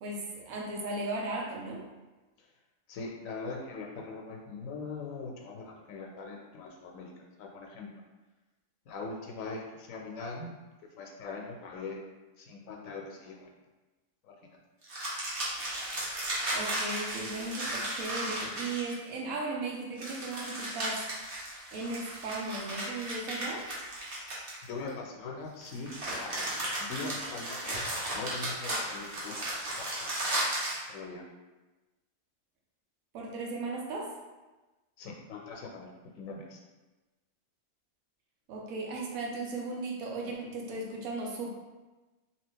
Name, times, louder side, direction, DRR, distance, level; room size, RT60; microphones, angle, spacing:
voice 1, 0.0-1.9 16.5-21.0 21.7-23.6 33.1-34.1 38.5-41.5, right 2 dB, 85° right, -1 dB, 1.2 m, -36 dB
voice 2, 2.9-7.1 7.4-7.9 8.9-10.5 11.0-12.0 12.4-13.5 14.2-14.3 24.6-26.3 26.8-27.8 28.1-29.4 29.8-30.4 30.9-31.2 35.0-35.9 36.2-36.6, left 4 dB, 75° left, 1 dB, 1.0 m, -41 dB
sound 1, 14.8-19.1 20.0-24.9 25.6-30.8, right 1 dB, 50° right, 1.0 m, -35 dB
2.8 x 2.7 x 3.6 m, 1.2 s
omnidirectional pair, 1.4 m